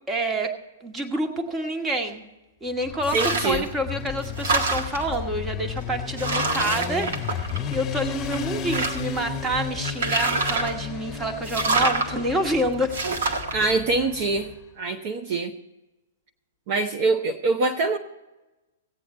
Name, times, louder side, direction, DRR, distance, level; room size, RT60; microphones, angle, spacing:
voice 1, 0.1-0.5 0.8-2.2 2.6-3.2 3.4-13.0, right 1 dB, 15° right, 4 dB, 1.3 m, -28 dB
Motorcycle, 2.8-14.5, left 7 dB, 20° left, 1.4 m, -33 dB
sound 1, 3.0-3.7 4.1-5.1 5.8-5.9 6.2-7.9 8.3-9.2 9.8-10.8 11.4-12.1 12.9-13.5, right 3 dB, 70° right, 1.6 m, -26 dB
voice 2, 3.1-3.7 13.5-14.5 14.8-15.6 16.7-18.0, right 3 dB, 45° right, 7 dB, 0.8 m, -24 dB
16.5 x 8.6 x 4.3 m, 1.0 s
hypercardioid pair, 115°, 0 cm